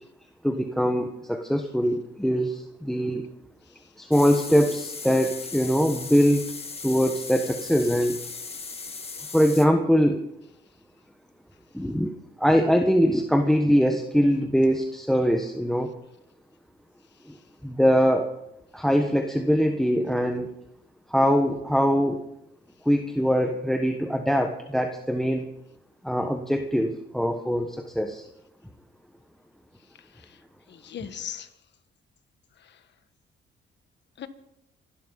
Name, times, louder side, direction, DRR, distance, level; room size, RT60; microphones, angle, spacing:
voice 1, 0.4-3.3 4.0-6.5 6.8-8.3 9.3-10.2 11.7-12.1 12.4-15.9 17.6-18.3 18.7-20.5 21.1-22.2 22.8-25.5 26.0-28.3, equal, ahead, 5 dB, 1.2 m, -22 dB
sound 1, 4.1-9.7, left 4 dB, 30° left, 1.9 m, -37 dB
voice 2, 30.0-30.4 30.7-31.5 32.6-32.8 34.2-34.3, left 9 dB, 60° left, 10 dB, 1.6 m, -40 dB
26.5 x 12.0 x 4.1 m, 0.84 s
cardioid pair, 90°, 20 cm